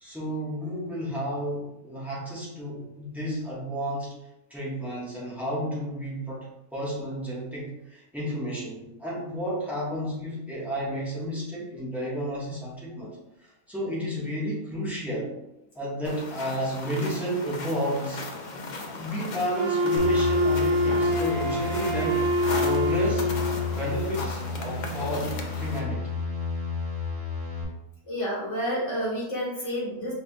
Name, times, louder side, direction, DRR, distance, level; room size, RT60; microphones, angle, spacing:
voice 1, 0.0-4.1 4.5-15.3 15.7-18.3 18.8-22.2 22.6-23.3 23.7-26.1, equal, ahead, -7 dB, 1.4 m, -32 dB
sound 1, 16.0-25.8, left 3 dB, 75° left, 0.4 m, -37 dB
Wind instrument woodwind instrument, 19.5-23.7, left 1 dB, 45° right, 0.3 m, -25 dB
sound 2, 20.0-27.6, left 4 dB, 25° right, 1.5 m, -32 dB
voice 2, 28.1-30.1, equal, 55° left, -7 dB, 2.0 m, -29 dB
4.8 x 4.3 x 2.4 m, 0.90 s
omnidirectional pair, 1.6 m